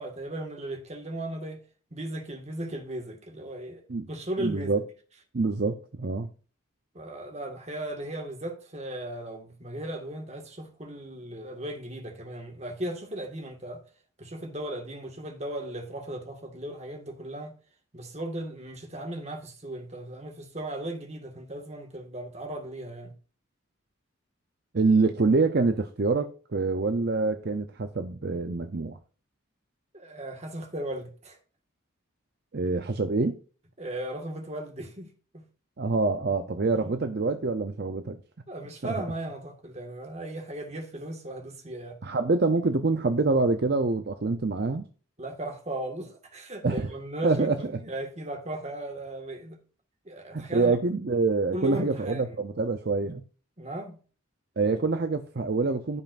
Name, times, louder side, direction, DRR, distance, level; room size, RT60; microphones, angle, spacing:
voice 1, 0.0-1.6 1.9-4.8 6.9-13.8 14.2-17.6 17.9-23.2 29.9-31.4 33.8-35.1 35.3-35.5 36.7-37.0 38.5-42.0 45.2-49.6 50.1-50.7 51.5-52.3 53.6-54.0, right 1 dB, 30° right, 1.8 m, -36 dB
voice 2, 4.4-4.8 5.3-6.3 24.7-29.0 32.5-33.4 35.8-38.2 38.8-38.9 42.0-44.9 46.6-46.9 47.2-47.7 50.3-53.2 54.6-56.0, right 3 dB, 50° right, 0.6 m, -26 dB
15.0 x 5.6 x 2.6 m
head